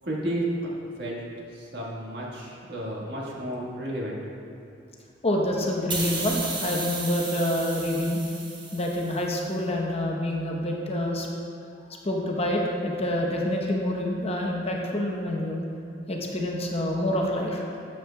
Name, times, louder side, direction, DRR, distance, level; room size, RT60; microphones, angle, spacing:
voice 1, 0.0-4.2 4.5-4.6, right 1 dB, 60° right, -4 dB, 1.6 m, -32 dB
voice 2, 5.2-8.2 8.7-11.3 11.9-15.6 16.1-17.6, left 1 dB, 35° left, -1 dB, 0.8 m, -27 dB
sound 1, 5.9-9.3, right 3 dB, 25° right, 1.1 m, -34 dB
12.5 x 7.7 x 2.2 m, 2.6 s
head